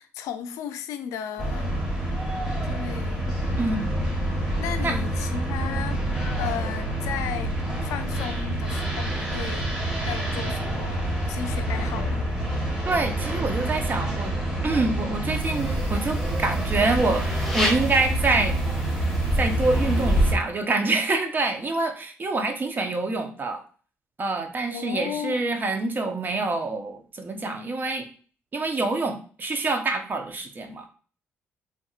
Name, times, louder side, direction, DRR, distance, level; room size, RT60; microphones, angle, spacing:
voice 1, 0.0-1.8 2.6-3.3 4.6-6.0 6.4-7.6 7.8-9.7 10.0-12.3 24.7-25.6, left 9 dB, 85° left, 0.4 m, -35 dB
sound 1, 1.4-20.4, right 1 dB, 15° right, 1.4 m, -27 dB
voice 2, 3.6-4.0 4.8-5.0 12.9-14.3 14.6-17.3 17.5-18.6 19.4-23.6 24.2-28.1 28.5-30.9, right 3 dB, 35° right, 0.6 m, -26 dB
sound 2, 15.3-20.3, equal, ahead, 1.3 m, -29 dB
3.4 x 2.9 x 2.4 m
supercardioid pair, 75°, 5 cm